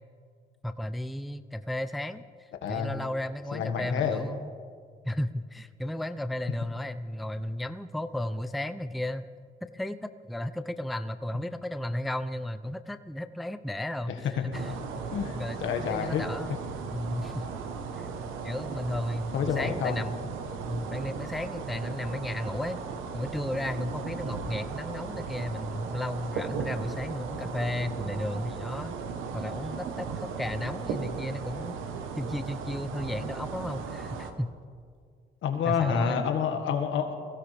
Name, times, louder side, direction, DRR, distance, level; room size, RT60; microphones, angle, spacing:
voice 1, 0.6-4.5 5.0-9.3 9.6-14.8 15.3-16.6 16.9-17.5 18.0-18.1 18.4-20.3 20.7-22.8 23.1-29.0 29.3-31.8 32.2-34.5 35.6-36.2, left 1 dB, ahead, 11 dB, 0.4 m, -34 dB
voice 2, 2.6-3.0 3.5-4.2 14.1-14.5 15.1-16.2 19.3-20.0 35.4-37.1, left 7 dB, 80° left, 5 dB, 1.6 m, -29 dB
sound 1, 14.5-34.3, right 5 dB, 90° right, 1.1 m, -37 dB
21.0 x 16.0 x 3.4 m, 2.1 s
cardioid pair, 90°, 20 cm